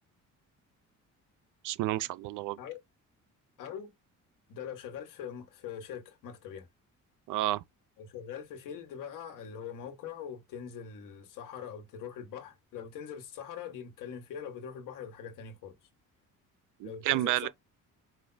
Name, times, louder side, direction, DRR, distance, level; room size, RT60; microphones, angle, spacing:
voice 1, 1.6-2.6 7.3-7.6 16.8-17.5, right 16 dB, 75° right, 0.5 m, -30 dB
voice 2, 3.6-3.9 4.5-6.7 8.0-15.7 16.8-17.5, left 8 dB, 85° left, 1.3 m, -42 dB
5.0 x 2.2 x 3.9 m
cardioid pair, 155°, 31 cm